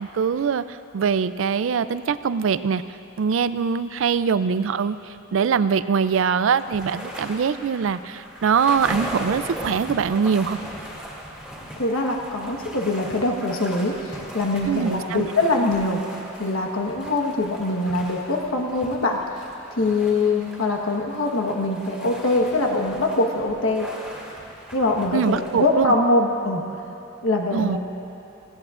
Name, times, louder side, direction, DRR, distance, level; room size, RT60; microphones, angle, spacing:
voice 1, 0.0-2.8 3.2-5.0 5.3-10.6 14.7-15.3 25.1-25.9 27.5-27.8, right 6 dB, 65° right, 14 dB, 0.4 m, -23 dB
sound 1, 6.0-25.8, equal, ahead, 2.4 m, -38 dB
voice 2, 11.8-19.4 19.8-23.9 24.7-26.6 27.2-27.8, left 2 dB, 75° left, 1 dB, 1.3 m, -23 dB
18.5 x 16.5 x 2.5 m, 2.9 s
head